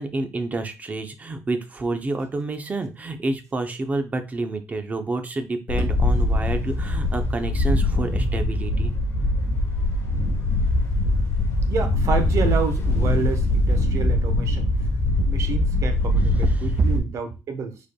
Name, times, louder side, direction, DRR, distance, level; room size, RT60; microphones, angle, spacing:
voice 1, 0.0-8.9 16.4-16.9, right 3 dB, 25° right, 7 dB, 0.6 m, -28 dB
Wind, 5.7-17.0, left 1 dB, 45° left, 1.4 m, -22 dB
voice 2, 11.6-14.7 15.3-16.3 16.6-17.8, right 5 dB, 55° right, 6 dB, 1.0 m, -28 dB
5.1 x 4.4 x 2.3 m, 0.28 s
cardioid pair, 140°, 6 cm